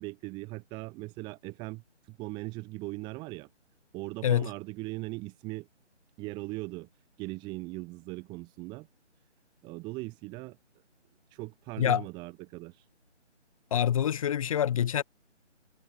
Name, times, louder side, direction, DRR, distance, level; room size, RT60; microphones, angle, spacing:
voice 1, 0.0-1.8 2.1-3.5 3.9-5.7 6.2-6.9 7.2-8.9 9.6-10.6 11.3-12.8, right 23 dB, 10° right, 6.7 m, -39 dB
voice 2, 13.7-15.0, left 9 dB, 30° left, 6.6 m, -26 dB
figure-of-eight pair, 160°, 36 cm